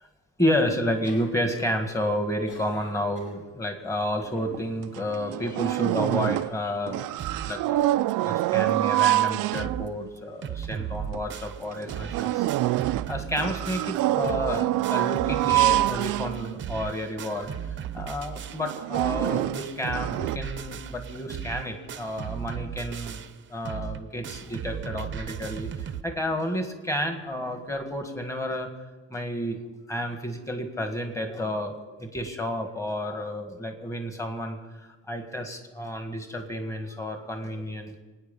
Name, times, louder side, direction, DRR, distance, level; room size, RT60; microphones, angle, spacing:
voice 1, 0.4-7.2 7.4-17.6 17.9-23.2 23.5-28.7 29.1-29.6 29.9-34.6 35.1-38.0, left 1 dB, 10° left, 5 dB, 1.7 m, -31 dB
sound 1, 0.9-1.7 2.0-3.4 4.0-4.7 5.4-5.8, left 2 dB, 45° left, 3.7 m, -47 dB
sound 2, 4.5-4.6 4.9-6.6 6.9-10.1 10.7-10.8 11.1-11.2 11.7-16.9 17.4-17.5 17.8-18.0 18.5-20.4, right 16 dB, 70° right, 0.5 m, -26 dB
sound 3, 7.2-7.7 8.1-8.2 8.4-8.5 9.0-9.1 9.3-9.9 10.2-26.0, right 8 dB, 35° right, 0.8 m, -36 dB
24.5 x 9.5 x 5.4 m, 1.2 s
cardioid pair, 160°, 33 cm